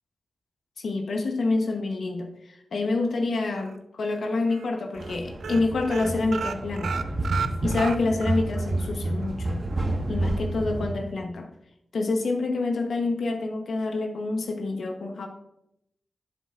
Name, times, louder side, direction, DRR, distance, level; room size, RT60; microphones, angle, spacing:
voice 1, 0.8-7.1 7.6-9.6 10.1-11.5 11.9-15.3, left 3 dB, 80° left, 4 dB, 0.9 m, -27 dB
sound 1, 3.6-4.2 4.5-4.7 4.9-5.2 5.4-8.4 8.8-8.9 9.2-9.3, right 6 dB, 85° right, 0.4 m, -33 dB
sound 2, 5.0-10.9, right 2 dB, 50° right, 1.4 m, -29 dB
11.5 x 7.3 x 2.4 m, 0.81 s
cardioid pair, 45°, 0 cm